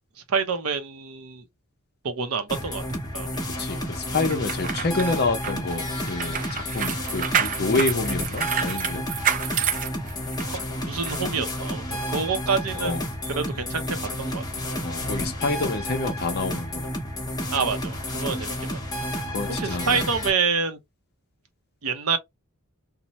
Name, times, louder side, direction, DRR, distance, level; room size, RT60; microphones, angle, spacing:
voice 1, 0.3-1.4 2.0-3.3 10.5-13.0 13.3-14.4 17.5-18.8 19.5-20.8 21.8-22.2, right 5 dB, 85° right, 0.7 m, -27 dB
sound 1, 2.5-20.3, left 1 dB, 20° left, 0.8 m, -31 dB
voice 2, 3.6-9.1 12.7-13.0 14.8-16.9 19.3-20.0, left 3 dB, 50° left, 0.7 m, -28 dB
sound 2, 4.3-10.6 11.0-11.2, right 8 dB, 40° right, 0.4 m, -28 dB
2.7 x 2.1 x 3.0 m
head